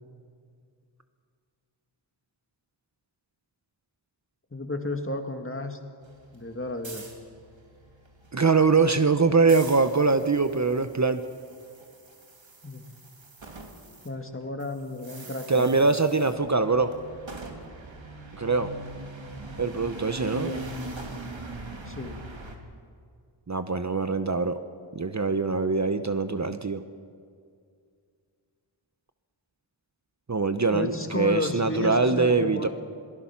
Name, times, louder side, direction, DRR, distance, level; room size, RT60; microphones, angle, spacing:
voice 1, 4.5-5.8 6.3-7.1 12.6-12.9 14.0-16.0 20.3-20.7 21.9-22.2 30.7-32.7, left 1 dB, 25° left, 5 dB, 2.1 m, -33 dB
sound 1, 6.0-14.1 14.3-22.6, right 2 dB, 75° right, 2.6 m, -42 dB
voice 2, 8.3-11.2 15.5-16.9 18.4-18.7 19.6-20.5 23.5-24.6 24.9-26.8 30.3-32.7, right 4 dB, 35° right, 10 dB, 0.9 m, -23 dB
26.5 x 18.5 x 5.9 m, 2.2 s
wide cardioid pair, 60°, 46 cm